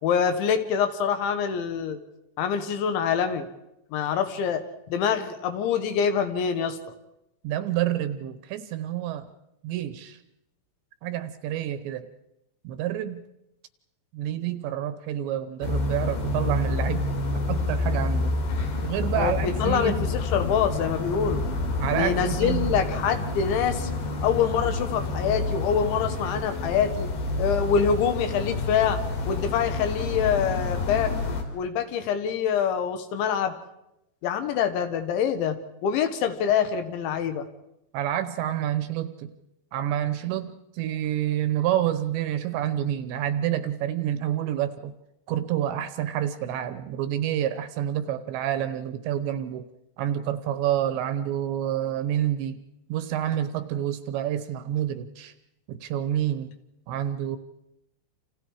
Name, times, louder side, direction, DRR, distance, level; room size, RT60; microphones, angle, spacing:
voice 1, 0.0-2.0 2.4-3.5 3.9-4.6 4.9-6.8 19.2-21.4 21.9-23.9 24.2-27.1 27.4-29.0 29.3-31.1 31.5-33.5 34.2-37.5, left 7 dB, 75° left, 8 dB, 3.6 m, -25 dB
voice 2, 7.4-9.3 9.6-10.2 11.0-12.1 12.6-13.2 14.1-17.0 17.3-18.4 18.8-20.1 21.8-22.7 37.9-39.3 39.7-44.9 45.3-49.7 50.0-52.6 52.9-55.3 55.7-56.5 56.9-57.4, right 11 dB, 75° right, 11 dB, 3.0 m, -28 dB
sound 1, 15.6-31.4, left 2 dB, 60° left, 4.9 m, -28 dB
29.5 x 27.5 x 4.8 m, 0.88 s
omnidirectional pair, 5.6 m